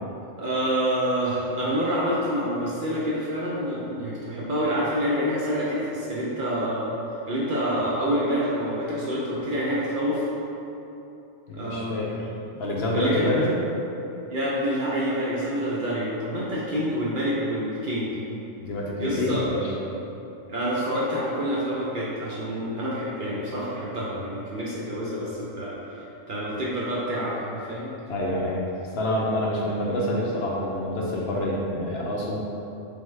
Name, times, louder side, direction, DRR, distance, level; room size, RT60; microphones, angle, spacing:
voice 1, 0.4-7.0 7.3-10.3 11.6-12.1 12.9-13.3 14.3-18.2 19.0-19.5 20.5-27.9, equal, 55° right, -7 dB, 0.6 m, -27 dB
voice 2, 11.5-12.1 12.5-13.5 18.6-19.7 28.1-28.6 29.0-32.4, left 1 dB, 65° left, -3 dB, 0.7 m, -27 dB
3.5 x 3.5 x 3.2 m, 2.9 s
omnidirectional pair, 1.3 m